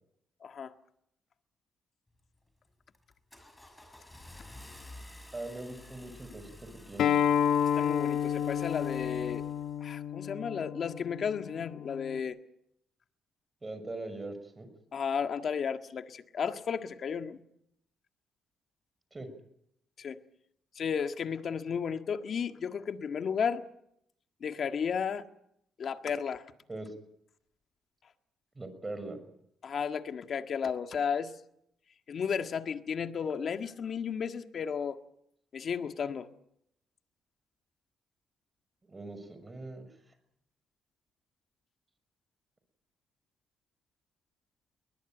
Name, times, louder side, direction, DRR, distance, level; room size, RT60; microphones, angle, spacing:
voice 1, 0.4-0.7 7.7-9.4 9.8-12.4 14.9-17.4 20.0-20.2 20.7-23.6 24.4-25.3 25.8-26.4 29.6-31.3 32.1-35.0 35.5-36.3, left 7 dB, 55° left, 8 dB, 1.7 m, -33 dB
Car / Engine starting, 2.2-2.5 2.9-9.9, left 1 dB, 10° left, 6.0 m, -52 dB
voice 2, 5.3-7.2 13.6-14.7 19.1-19.3 26.7-26.9 28.6-29.2 38.9-39.9, right 2 dB, 20° right, 10 dB, 6.2 m, -41 dB
Acoustic guitar, 7.0-12.2, left 9 dB, 75° left, 1.3 m, -30 dB
22.0 x 20.5 x 9.2 m, 0.75 s
cardioid pair, 90°, 0 cm